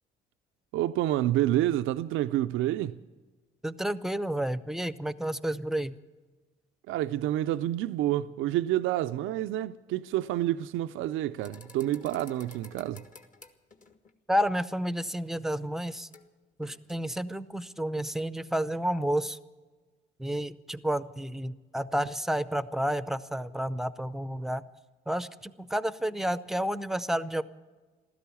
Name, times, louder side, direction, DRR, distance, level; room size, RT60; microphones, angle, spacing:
voice 1, 0.7-3.0 6.9-13.0, right 13 dB, 90° right, 0.4 m, -28 dB
voice 2, 3.6-5.9 14.3-16.1 16.6-19.4 20.2-24.6 25.1-27.4, equal, ahead, 0.6 m, -30 dB
sound 1, 11.4-14.1 16.1-16.3 16.6-17.0, left 4 dB, 40° left, 1.5 m, -52 dB
15.5 x 13.0 x 7.0 m
cardioid pair, 90°, 20 cm